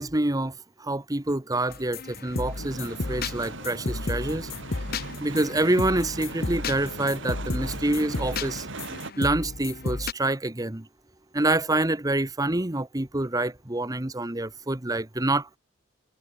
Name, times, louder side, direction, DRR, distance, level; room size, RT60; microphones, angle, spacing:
voice 1, 0.0-4.5 5.2-8.7 9.2-10.9 11.3-15.6, right 2 dB, 15° right, 1.0 m, -27 dB
sound 1, 1.7-10.1, left 3 dB, 45° left, 1.0 m, -33 dB
sound 2, 2.3-9.1, right 3 dB, 60° right, 2.4 m, -39 dB
head